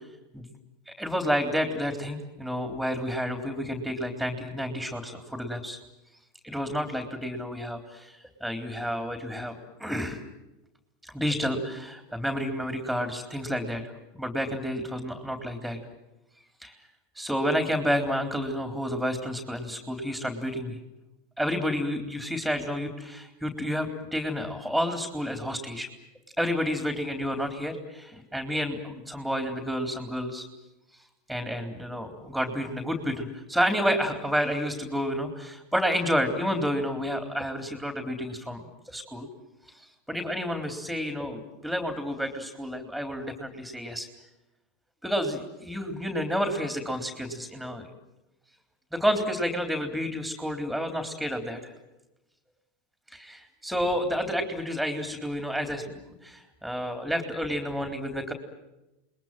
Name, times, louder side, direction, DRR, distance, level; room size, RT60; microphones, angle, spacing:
voice 1, 0.9-5.8 6.4-10.2 11.0-13.8 14.2-15.8 16.6-16.7 17.2-20.8 21.4-25.9 26.4-30.4 31.3-39.3 40.1-44.1 45.0-47.9 48.9-51.7 53.1-58.3, equal, ahead, 6 dB, 3.7 m, -30 dB
29.5 x 21.5 x 7.7 m, 0.97 s
hypercardioid pair, 85°, 0 cm